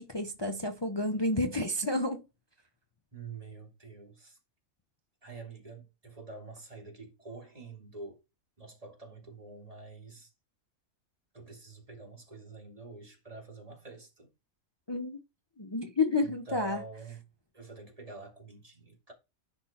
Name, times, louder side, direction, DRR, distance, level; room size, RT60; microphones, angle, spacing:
voice 1, 0.0-2.2 14.9-15.2 15.6-16.8, left 2 dB, 25° left, 0.6 m, -30 dB
voice 2, 3.1-4.4 5.2-8.2 8.6-10.3 11.3-14.3 16.5-17.2 17.5-19.1, right 3 dB, 25° right, 2.4 m, -47 dB
10.0 x 3.9 x 4.3 m
omnidirectional pair, 1.5 m